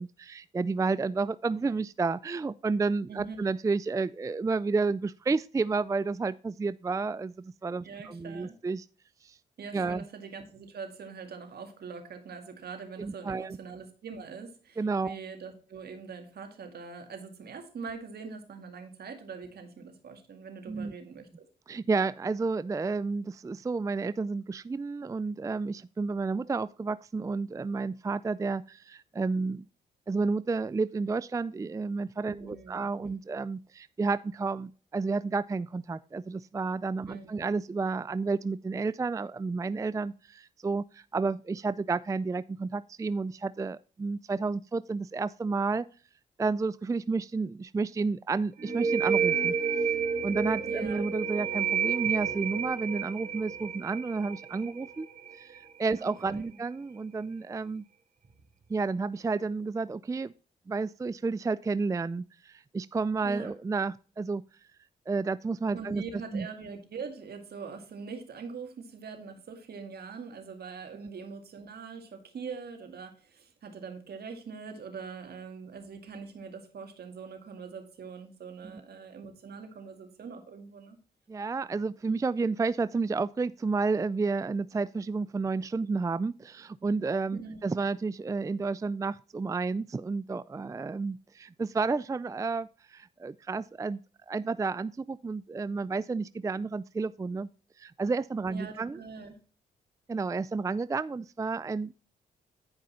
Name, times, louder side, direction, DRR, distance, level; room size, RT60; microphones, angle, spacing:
voice 1, 0.0-8.9 9.2-9.4 9.7-10.0 13.0-13.6 14.8-15.1 20.7-20.9 21.7-29.6 30.1-45.9 46.4-49.6 50.2-55.1 55.3-57.8 58.7-60.3 60.7-64.4 65.1-66.0 66.3-66.5 81.3-94.0 94.3-97.5 97.8-99.0 100.1-101.9, right 4 dB, 20° right, 0.4 m, -31 dB
voice 2, 7.8-8.6 9.6-21.5 32.3-33.1 37.1-37.3 50.7-51.0 56.0-56.6 63.2-63.5 65.7-81.0 87.3-87.6 98.5-99.4, right 5 dB, 65° right, 2.2 m, -43 dB
sound 1, 48.6-56.0, right 6 dB, 50° right, 2.8 m, -30 dB
10.5 x 5.3 x 4.3 m
supercardioid pair, 55°, 17 cm